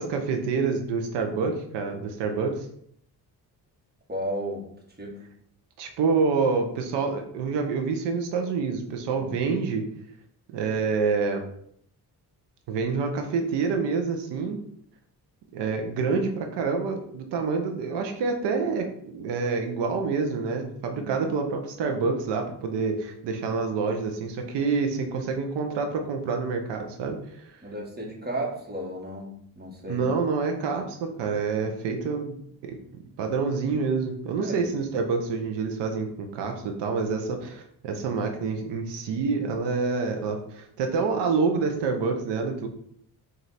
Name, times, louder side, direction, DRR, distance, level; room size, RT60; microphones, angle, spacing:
voice 1, 0.0-2.7 5.8-9.9 10.5-11.4 12.7-14.6 15.5-27.6 29.9-32.4 32.6-32.7 33.2-42.7, right 4 dB, 90° right, 4 dB, 0.8 m, -27 dB
voice 2, 4.1-4.7 5.0-5.3 9.2-9.3 20.9-21.3 27.6-30.1 31.5-31.7 34.4-34.7, right 1 dB, 25° right, -1 dB, 1.6 m, -34 dB
4.5 x 2.7 x 4.1 m, 0.68 s
cardioid pair, 70°, 41 cm